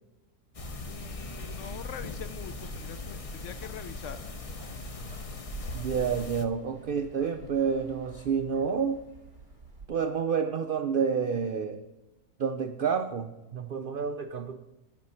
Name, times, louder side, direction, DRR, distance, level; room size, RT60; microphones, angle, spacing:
sound 1, 0.5-6.4, left 3 dB, 40° left, 0.5 m, -39 dB
voice 1, 0.8-4.2 7.4-7.5, left 8 dB, 65° left, 11 dB, 0.8 m, -44 dB
sound 2, 1.8-9.9, right 3 dB, 30° right, 2.1 m, -48 dB
voice 2, 5.7-9.0 9.9-11.8 12.4-14.6, right 6 dB, 80° right, 8 dB, 0.4 m, -29 dB
9.6 x 5.4 x 7.0 m, 1.0 s
omnidirectional pair, 1.6 m